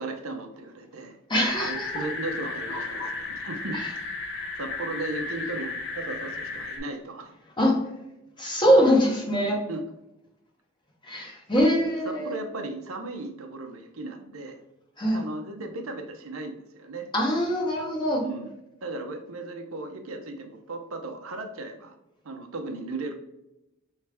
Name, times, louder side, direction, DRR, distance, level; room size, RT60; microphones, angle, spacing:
voice 1, 0.0-1.2 1.5-3.8 4.4-7.7 9.7-9.8 11.1-11.4 11.7-11.8 12.0-14.6 15.1-17.1 18.2-18.5 18.8-21.9 22.2-23.2, right 2 dB, 70° right, 5 dB, 0.7 m, -36 dB
voice 2, 1.3-1.8 3.7-3.9 7.6-7.7 8.4-9.6 11.0-12.4 15.0-15.2 17.1-18.2, equal, 20° left, -1 dB, 1.1 m, -23 dB
sound 1, 1.4-6.8, left 3 dB, 60° left, 1.1 m, -34 dB
4.6 x 3.2 x 3.4 m, 0.89 s
head